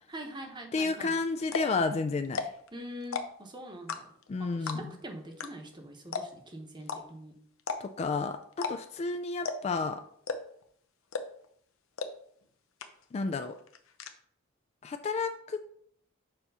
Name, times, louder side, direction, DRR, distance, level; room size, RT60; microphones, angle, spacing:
voice 1, 0.1-1.1 2.7-4.1 4.4-7.4, equal, 25° right, 3 dB, 1.0 m, -44 dB
voice 2, 0.7-2.4 4.3-4.9 7.8-10.0 13.1-13.6 14.8-15.6, left 4 dB, 30° left, 9 dB, 0.3 m, -31 dB
sound 1, 1.0-1.1 1.4-1.8 2.2-2.7 3.0-3.5 3.9-4.3 4.7-5.0 5.4-5.5 5.7-5.8 6.1-6.5 6.9-7.0 7.6-8.0 8.5-8.7 9.0-9.1 9.4-9.8 10.2-10.6 11.1-11.5 12.0-12.1 12.4-12.5 12.8-13.2 13.5-14.1, left 5 dB, 75° left, 0.7 m, -34 dB
6.8 x 3.0 x 5.4 m, 0.64 s
head